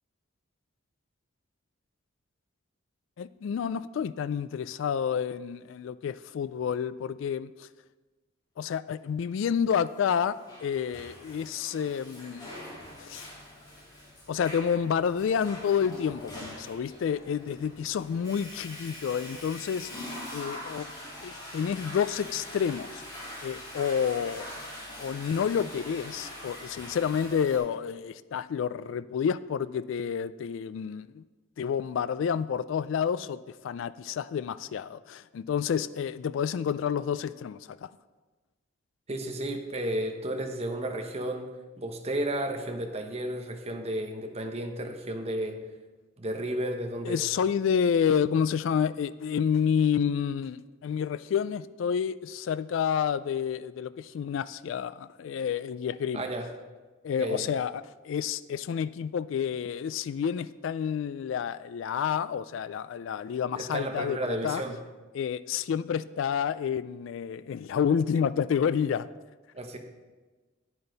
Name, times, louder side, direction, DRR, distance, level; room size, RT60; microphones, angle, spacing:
voice 1, 3.2-7.7 8.6-12.5 13.0-13.3 14.3-20.0 20.3-20.9 21.2-23.0 23.4-24.5 25.0-31.2 31.6-37.9 47.0-56.2 57.0-64.6 65.1-69.1, left 7 dB, 70° left, 0.3 m, -29 dB
Water / Toilet flush, 10.1-27.6, left 1 dB, 20° left, 3.2 m, -43 dB
voice 2, 39.1-41.5 41.8-45.6 46.2-47.2 56.1-56.5 57.2-57.5 63.5-64.8 69.5-69.8, right 1 dB, 30° right, 1.0 m, -32 dB
9.8 x 9.6 x 4.0 m
head